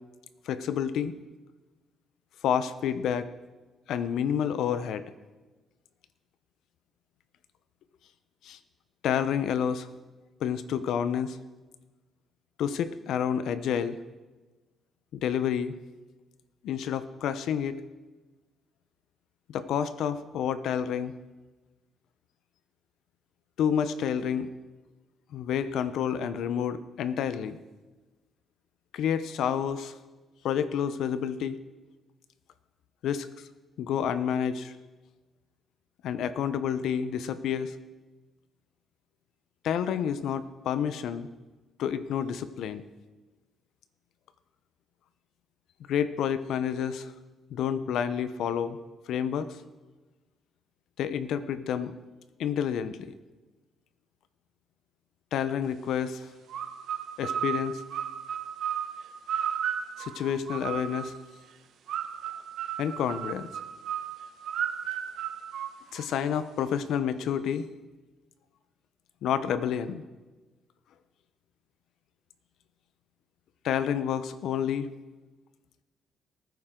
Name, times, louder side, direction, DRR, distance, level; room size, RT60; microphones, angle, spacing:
voice 1, 0.5-1.1 2.4-3.3 3.9-5.1 8.4-8.6 9.0-9.9 10.4-11.4 12.6-14.0 15.1-15.7 16.6-17.8 19.5-21.1 23.6-24.5 25.3-27.6 28.9-29.9 30.4-31.6 33.0-33.3 33.8-34.7 36.0-37.7 39.6-41.3 41.8-42.8 45.9-47.1 47.5-48.8 49.1-49.6 51.0-51.9 52.4-53.1 55.3-56.3 57.2-57.8 60.0-61.1 62.8-63.5 65.9-67.7 69.2-70.0 73.6-74.9, left 8 dB, 80° left, 12 dB, 0.8 m, -29 dB
sound 1, 56.5-61.2 61.9-66.3, right 9 dB, 75° right, 1.2 m, -34 dB
19.5 x 9.5 x 3.8 m, 1.2 s
cardioid pair, 90°, 0 cm